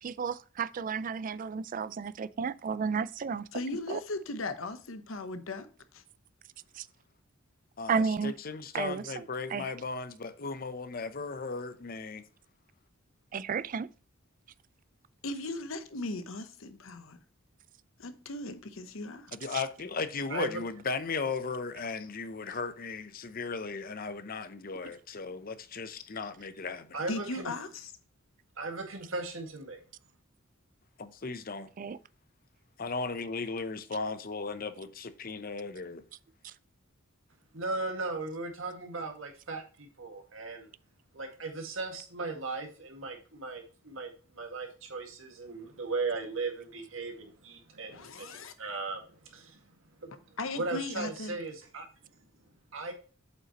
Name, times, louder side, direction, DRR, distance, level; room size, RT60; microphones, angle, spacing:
voice 1, 0.0-3.5 3.9-4.0 6.8-6.9 7.9-8.3 8.7-9.7 13.3-13.9 19.5-19.6 24.8-24.9 31.8-32.0 36.4-36.5, right 5 dB, 40° right, 0.3 m, -33 dB
voice 2, 3.5-5.7 5.9-6.0 15.2-17.2 18.0-19.3 27.1-27.9 47.9-48.5 50.4-51.3, left 2 dB, 75° left, 0.9 m, -37 dB
voice 3, 7.8-12.2 19.3-26.9 31.0-31.7 32.8-36.0, left 4 dB, 45° left, 0.7 m, -36 dB
voice 4, 20.3-20.6 26.9-27.5 28.6-29.8 37.5-40.7 41.1-49.6 50.0-50.1 50.5-51.9 52.7-52.9, right 3 dB, 75° right, 1.9 m, -37 dB
7.8 x 5.5 x 3.0 m
head